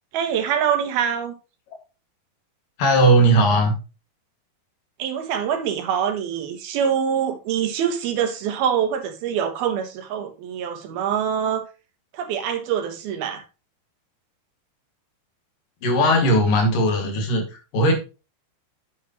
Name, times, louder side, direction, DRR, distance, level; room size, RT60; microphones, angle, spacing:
voice 1, 0.1-1.3 5.0-11.6 12.1-13.4, right 8 dB, 80° right, 3.3 m, -24 dB
voice 2, 2.8-3.7 15.8-17.5 17.7-17.9, right 1 dB, 65° left, 3.7 m, -17 dB
9.2 x 8.3 x 3.1 m
omnidirectional pair, 4.3 m